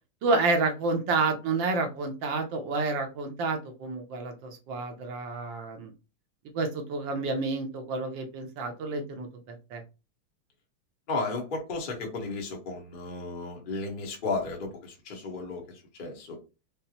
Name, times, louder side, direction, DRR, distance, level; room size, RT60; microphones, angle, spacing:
voice 1, 0.2-5.9 6.5-9.8, right 3 dB, 70° right, 5 dB, 1.3 m, -29 dB
voice 2, 11.1-16.4, left 3 dB, 40° left, 1 dB, 0.8 m, -34 dB
5.3 x 2.0 x 2.8 m, 0.29 s
omnidirectional pair, 2.4 m